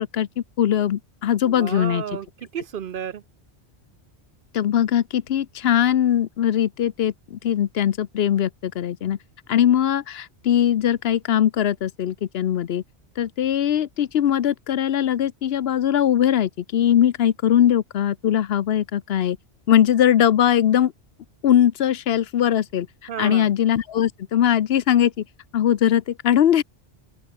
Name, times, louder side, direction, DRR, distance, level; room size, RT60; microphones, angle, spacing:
voice 1, 0.0-2.0 4.5-9.2 9.5-12.8 13.2-19.4 19.7-20.9 21.4-22.9 23.2-25.2 25.5-26.6, left 10 dB, 65° left, 0.9 m, -20 dB
voice 2, 1.4-3.2 23.1-23.5, right 9 dB, 60° right, 0.7 m, -32 dB
open air
omnidirectional pair, 1.1 m